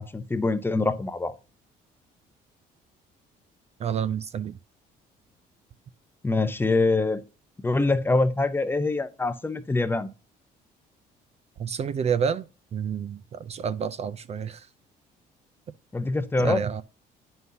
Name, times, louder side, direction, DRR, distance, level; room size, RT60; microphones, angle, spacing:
voice 1, 0.0-1.3 6.2-7.2 7.6-10.1 15.9-16.6, left 3 dB, 15° left, 0.7 m, -24 dB
voice 2, 3.8-4.6 11.6-14.7 16.4-16.8, right 7 dB, 40° right, 0.4 m, -29 dB
9.7 x 5.5 x 2.7 m
cardioid pair, 110°, 17 cm